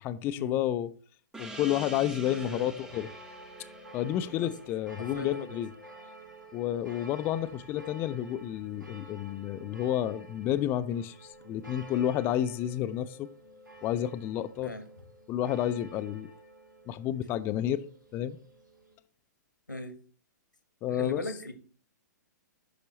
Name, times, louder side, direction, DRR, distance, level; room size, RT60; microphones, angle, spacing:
voice 1, 0.0-0.9 1.4-3.1 3.9-5.7 6.5-13.3 13.8-14.7 15.3-16.3 16.9-17.8 18.1-18.4 20.8-21.2, left 11 dB, 20° left, 0.4 m, -30 dB
Gong, 1.3-6.4, right 2 dB, 5° right, 0.7 m, -47 dB
voice 2, 2.3-2.7 4.4-4.5 5.0-5.6 14.6-14.8 19.7-19.9 20.9-21.5, left 1 dB, 85° left, 1.3 m, -38 dB
sound 1, 2.3-19.0, right 1 dB, 85° right, 1.8 m, -50 dB
9.7 x 6.1 x 3.0 m
figure-of-eight pair, 115°, 10 cm